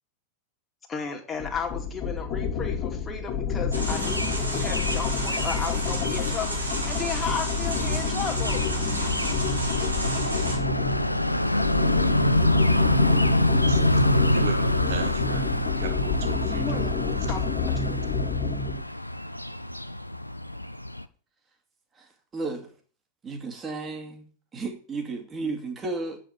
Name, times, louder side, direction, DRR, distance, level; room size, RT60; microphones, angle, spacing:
voice 1, 0.9-8.7 16.6-18.1, left 5 dB, 15° left, 1 dB, 2.5 m, -34 dB
sound 1, 1.4-18.8, left 5 dB, 35° left, 2.4 m, -29 dB
sound 2, 3.7-10.6, right 1 dB, 85° right, 2.6 m, -33 dB
sound 3, 4.0-21.1, left 1 dB, 90° left, 0.5 m, -27 dB
voice 2, 13.6-14.0 14.3-16.8, right 7 dB, 55° right, 8 dB, 1.4 m, -37 dB
voice 3, 22.3-22.7 23.2-24.3 24.5-26.2, right 3 dB, 20° right, 4 dB, 2.5 m, -33 dB
9.0 x 6.3 x 7.1 m, 0.39 s
figure-of-eight pair, 90°, 0 cm